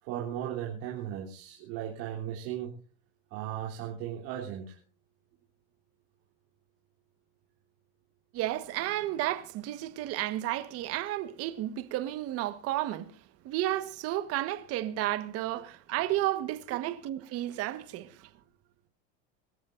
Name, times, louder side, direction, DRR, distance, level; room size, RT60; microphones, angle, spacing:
voice 1, 0.0-2.8 3.3-4.8 16.9-17.0, right 10 dB, 70° right, 3.6 m, -36 dB
voice 2, 8.3-13.1 13.4-18.1, right 14 dB, 45° right, 1.5 m, -32 dB
26.0 x 13.5 x 2.6 m
supercardioid pair, 145°, 32 cm